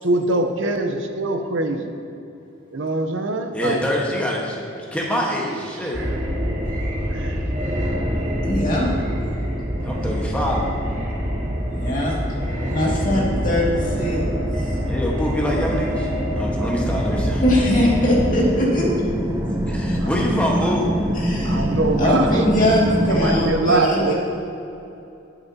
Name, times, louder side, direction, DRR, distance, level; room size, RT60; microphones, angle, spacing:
voice 1, 0.0-2.0 2.7-3.8 5.8-6.2 7.1-7.5 20.0-20.1 20.6-20.7 21.4-22.4 23.1-24.1, right 2 dB, 75° right, 5 dB, 0.8 m, -23 dB
voice 2, 3.5-4.6 4.9-6.0 9.8-10.7 12.5-13.3 14.8-17.4 19.7-20.8, equal, 5° left, -3 dB, 1.4 m, -25 dB
sound 1, 5.9-18.3, equal, 40° right, 1.6 m, -25 dB
sound 2, 8.1-23.4, equal, 15° right, 0.7 m, -27 dB
voice 3, 8.4-8.9 11.7-12.2 12.7-14.2 14.6-14.7 17.4-18.9 19.9-20.0 21.2-21.6 22.0-24.1, left 1 dB, 40° left, -5 dB, 2.2 m, -21 dB
19.0 x 6.9 x 2.9 m, 2.8 s
head